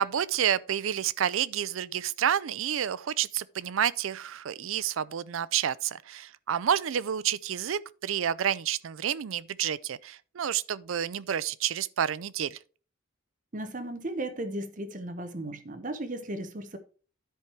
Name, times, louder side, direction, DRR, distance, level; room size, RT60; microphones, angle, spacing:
voice 1, 0.0-12.6, right 9 dB, 85° right, 0.4 m, -29 dB
voice 2, 13.5-16.8, right 1 dB, 40° right, 0.8 m, -35 dB
10.5 x 4.6 x 4.7 m
head